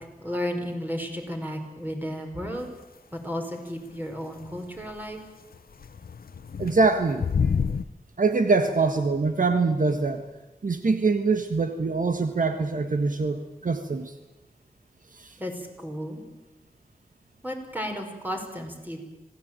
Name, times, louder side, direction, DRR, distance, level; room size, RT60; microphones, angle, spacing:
voice 1, 0.2-2.7 3.1-5.2 15.4-16.2 17.4-19.0, equal, 10° right, 3 dB, 5.1 m, -33 dB
sound 1, 4.4-4.9 5.5-7.8, left 6 dB, 85° left, 0.8 m, -28 dB
voice 2, 6.6-7.2 8.2-10.3 10.6-14.1 15.1-15.4, right 3 dB, 60° right, 7 dB, 1.5 m, -24 dB
26.0 x 18.0 x 9.0 m, 1.1 s
wide cardioid pair, 100°, 15 cm